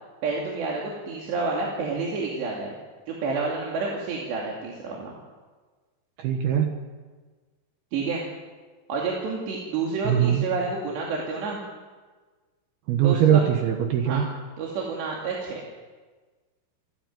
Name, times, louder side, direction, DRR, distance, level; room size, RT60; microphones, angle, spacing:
voice 1, 0.2-2.7 3.1-5.1 7.9-8.2 8.9-11.6 13.0-13.4 14.1-14.2 14.6-15.6, right 4 dB, 90° right, -2 dB, 4.8 m, -29 dB
voice 2, 6.2-6.7 10.0-10.4 12.9-14.3, right 9 dB, 70° right, 3 dB, 3.2 m, -21 dB
28.5 x 12.5 x 9.4 m, 1.4 s
omnidirectional pair, 4.8 m